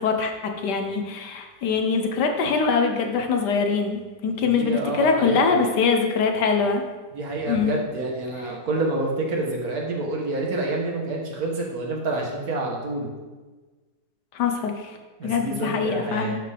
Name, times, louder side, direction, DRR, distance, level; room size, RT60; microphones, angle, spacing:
voice 1, 0.0-6.8 7.5-7.7 14.3-14.9 15.2-16.4, left 5 dB, 70° left, 5 dB, 1.3 m, -23 dB
voice 2, 4.4-5.5 7.1-13.1 15.2-16.3, right 2 dB, 55° right, -1 dB, 1.6 m, -28 dB
11.5 x 4.9 x 3.4 m, 1.3 s
omnidirectional pair, 2.0 m